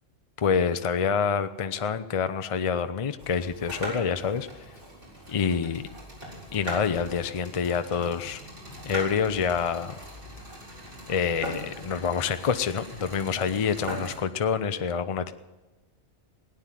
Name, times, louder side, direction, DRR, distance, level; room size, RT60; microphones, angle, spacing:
voice 1, 0.4-4.5 5.3-5.8 6.5-8.4 8.8-10.0 11.1-15.3, left 6 dB, 40° left, 10 dB, 0.5 m, -27 dB
sound 1, 3.2-14.2, right 1 dB, 55° right, 4.8 m, -40 dB
17.5 x 9.9 x 7.5 m, 1.1 s
omnidirectional pair, 1.1 m